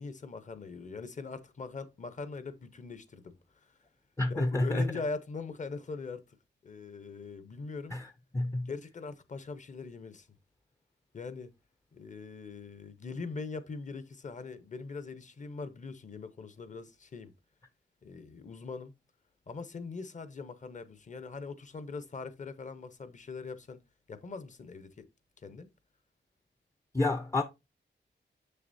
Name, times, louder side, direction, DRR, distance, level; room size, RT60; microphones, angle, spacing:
voice 1, 0.0-3.4 4.3-6.2 6.6-8.0 8.7-10.3 11.1-11.5 11.9-17.3 18.0-18.9 19.5-23.8 24.1-25.0 25.4-25.7, left 4 dB, 40° left, 0.8 m, -41 dB
voice 2, 4.2-4.9 7.9-8.1 8.3-8.7 26.9-27.4, left 2 dB, 15° left, 0.4 m, -29 dB
6.7 x 6.6 x 2.6 m
wide cardioid pair, 150°, 20 cm